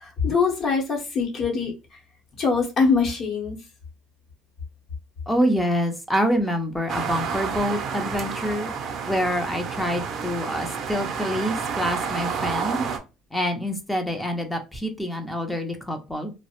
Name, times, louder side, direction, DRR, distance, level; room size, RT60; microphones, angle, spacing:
voice 1, 0.0-1.7 2.4-3.6, left 5 dB, 45° left, -1 dB, 0.8 m, -23 dB
voice 2, 5.3-8.7 9.1-12.9 13.3-16.3, equal, 5° left, 5 dB, 0.4 m, -26 dB
sound 1, 6.9-13.0, right 6 dB, 50° right, 0.4 m, -30 dB
2.3 x 2.0 x 2.8 m, 0.28 s
cardioid pair, 135°, 0 cm